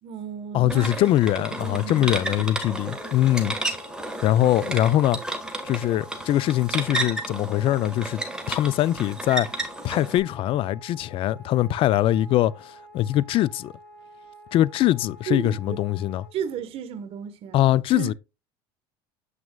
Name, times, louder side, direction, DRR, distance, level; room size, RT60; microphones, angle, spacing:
voice 1, 0.0-1.1 1.3-3.0 3.3-3.6 15.3-15.8 16.3-17.6 17.9-18.1, right 8 dB, 50° right, 1.1 m, -34 dB
voice 2, 0.5-3.6 4.2-5.2 5.6-8.2 8.5-13.7 14.5-16.2 17.5-18.1, left 13 dB, 45° left, 0.3 m, -22 dB
sound 1, 0.7-10.2, right 2 dB, 5° right, 1.4 m, -32 dB
Wind instrument woodwind instrument, 2.8-16.3, equal, 15° left, 3.2 m, -48 dB
7.5 x 6.1 x 2.2 m
supercardioid pair, 115°, 12 cm